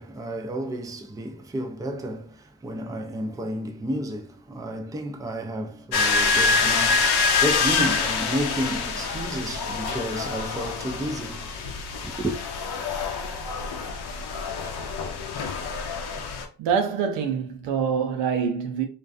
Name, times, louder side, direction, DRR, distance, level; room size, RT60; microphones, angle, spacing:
voice 1, 0.0-12.4, equal, 10° right, 0.4 m, -32 dB
sound 1, 5.9-16.4, left 4 dB, 60° left, 0.6 m, -26 dB
voice 2, 16.6-18.9, right 7 dB, 80° right, 0.7 m, -25 dB
2.4 x 2.2 x 2.5 m
hypercardioid pair, 45°, 44 cm